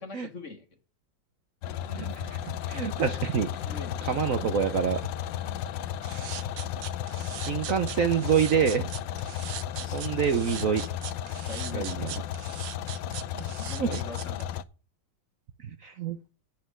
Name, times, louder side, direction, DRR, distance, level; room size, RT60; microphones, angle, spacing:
voice 1, 0.0-0.6 3.6-4.4 5.4-5.6 9.8-10.1 11.5-12.2 13.6-14.5, left 4 dB, 40° left, 6 dB, 1.8 m, -42 dB
sound 1, 1.6-14.6, left 10 dB, 80° left, 1.3 m, -34 dB
voice 2, 1.9-3.5 4.1-5.0 7.4-8.9 9.9-10.8 11.7-12.1 13.8-14.0 15.8-16.2, right 7 dB, 60° right, 8 dB, 0.9 m, -26 dB
sound 2, 6.0-14.4, right 12 dB, 80° right, 1.4 m, -40 dB
8.4 x 5.8 x 8.0 m, 0.35 s
omnidirectional pair, 2.0 m